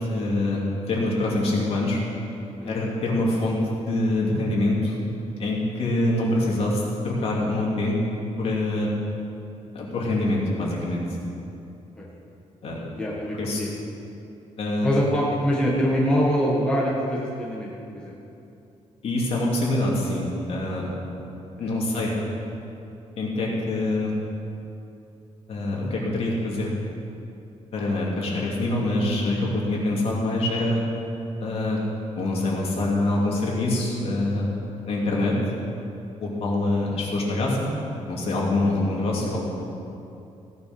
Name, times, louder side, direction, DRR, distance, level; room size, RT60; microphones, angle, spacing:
voice 1, 0.0-2.0 2.6-3.6 3.9-5.1 5.4-8.0 8.4-8.9 9.7-11.0 12.6-12.8 13.4-13.6 14.6-14.9 19.0-20.9 21.6-22.2 23.2-24.1 25.5-26.7 27.7-30.8 31.4-31.8 32.2-34.5 34.9-35.3 36.2-37.7 38.1-39.4, left 2 dB, 55° left, -3 dB, 2.8 m, -25 dB
voice 2, 12.9-13.7 14.8-18.2 21.6-22.3, equal, 5° left, -5 dB, 1.6 m, -25 dB
16.0 x 9.4 x 6.2 m, 2.7 s
cardioid pair, 175°, 12 cm